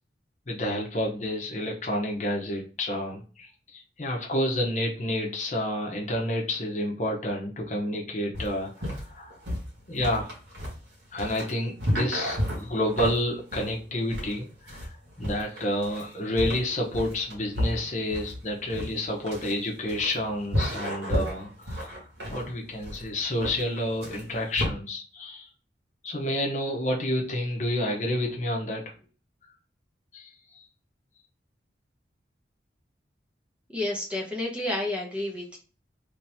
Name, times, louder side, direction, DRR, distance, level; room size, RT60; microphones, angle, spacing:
voice 1, 0.5-3.5 3.7-9.4 9.9-10.3 11.1-14.9 15.2-22.0 22.3-25.5 26.0-28.8 30.1-30.6, left 1 dB, 45° left, 0 dB, 1.0 m, -29 dB
sound 1, 8.3-24.7, equal, 70° right, 1.6 m, -32 dB
voice 2, 33.7-35.6, left 1 dB, 5° right, -2 dB, 0.8 m, -30 dB
3.4 x 2.9 x 3.4 m, 0.36 s
head